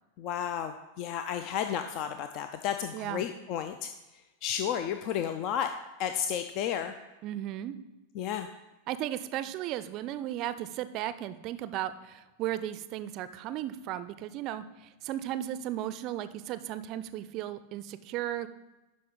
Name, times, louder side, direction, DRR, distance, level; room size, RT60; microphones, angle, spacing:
voice 1, 0.2-3.9 4.4-5.7 6.0-6.9 8.2-8.5, left 9 dB, 40° left, 8 dB, 0.4 m, -32 dB
voice 2, 2.9-3.3 7.2-7.8 8.9-18.5, right 12 dB, 40° right, 13 dB, 0.5 m, -35 dB
11.5 x 5.0 x 3.9 m, 1.1 s
figure-of-eight pair, 90°, 0 cm